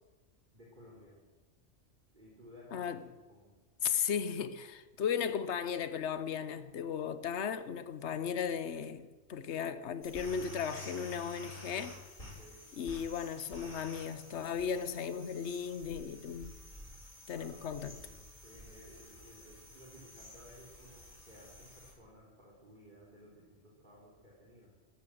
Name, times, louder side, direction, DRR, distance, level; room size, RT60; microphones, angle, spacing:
voice 1, 0.5-1.2 2.1-3.0 3.3-3.5 12.4-12.7 17.3-24.7, equal, 45° right, 3.5 m, -57 dB
voice 2, 3.8-12.0 12.8-16.5 17.3-18.0, left 7 dB, 70° left, 1.2 m, -36 dB
sound 1, 10.0-21.9, left 1 dB, 45° left, 6.8 m, -51 dB
14.0 x 12.5 x 7.8 m
omnidirectional pair, 1.2 m